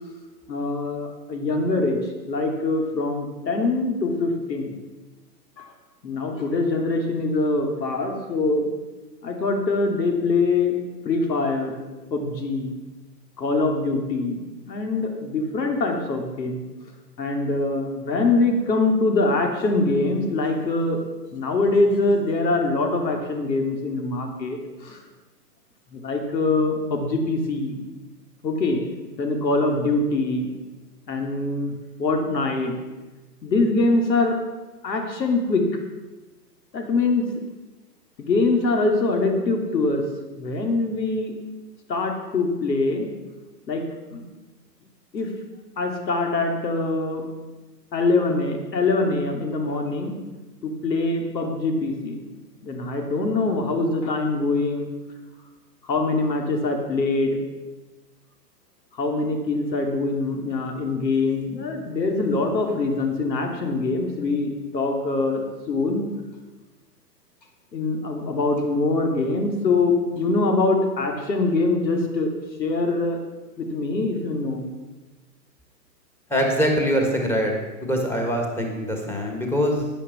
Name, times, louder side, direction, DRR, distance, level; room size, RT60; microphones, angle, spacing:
voice 1, 0.5-4.7 5.6-5.7 6.0-8.7 9.2-10.8 11.0-11.8 12.1-12.8 13.4-16.7 17.2-21.0 21.3-25.0 25.9-27.8 28.4-28.8 29.2-30.5 31.1-31.7 32.0-32.8 33.4-34.4 34.8-35.7 36.7-37.4 38.2-40.0 40.4-41.3 41.9-43.1 43.7-43.8 44.1-44.2 45.1-45.3 45.8-47.2 47.9-50.2 50.6-52.2 52.6-54.9 55.8-57.4 58.9-66.1 67.7-72.3 72.6-73.2 73.6-74.6, left 3 dB, 80° left, 3 dB, 3.0 m, -23 dB
voice 2, 76.3-79.9, equal, 5° left, 1 dB, 1.6 m, -23 dB
10.0 x 9.5 x 6.8 m, 1.2 s
hypercardioid pair, 140°, 50 cm